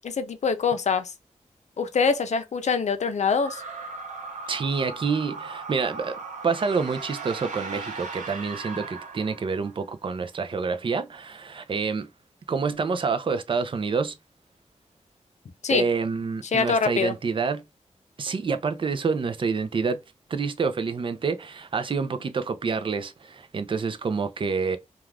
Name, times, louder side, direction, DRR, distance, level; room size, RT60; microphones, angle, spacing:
voice 1, 0.0-1.1 1.8-3.6 15.6-15.9 16.5-17.1, left 5 dB, 65° left, 0.5 m, -24 dB
sound 1, 3.4-9.8, right 4 dB, 85° right, 0.8 m, -38 dB
voice 2, 4.5-6.2 6.4-12.1 12.5-14.2 15.7-17.6 18.2-20.0 20.3-24.8, right 5 dB, 40° right, 0.4 m, -27 dB
2.4 x 2.3 x 3.1 m
wide cardioid pair, 115°, 13 cm